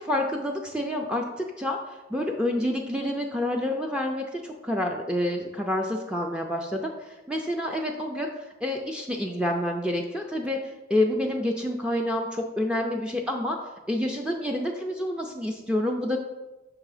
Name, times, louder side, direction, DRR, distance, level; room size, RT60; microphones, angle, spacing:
voice 1, 0.0-8.3 8.6-13.5 13.9-16.2, left 1 dB, 5° right, 0 dB, 0.4 m, -28 dB
5.9 x 3.6 x 4.9 m, 1.1 s
head